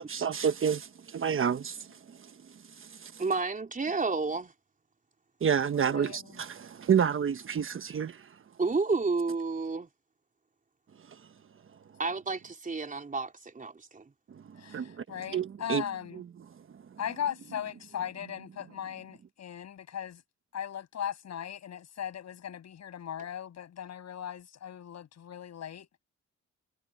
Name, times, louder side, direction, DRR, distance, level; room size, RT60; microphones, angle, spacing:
voice 1, 0.0-3.2 5.4-8.4 11.0-11.3 14.3-15.8 16.1-17.0, right 7 dB, 45° right, 1.2 m, -31 dB
voice 2, 3.2-4.5 8.6-9.9 12.0-14.1, right 4 dB, 25° right, 4.1 m, -31 dB
voice 3, 5.9-6.2 14.6-16.2 17.0-20.2 20.5-25.9, left 9 dB, 60° left, 7.0 m, -38 dB
cardioid pair, 90°, 30 cm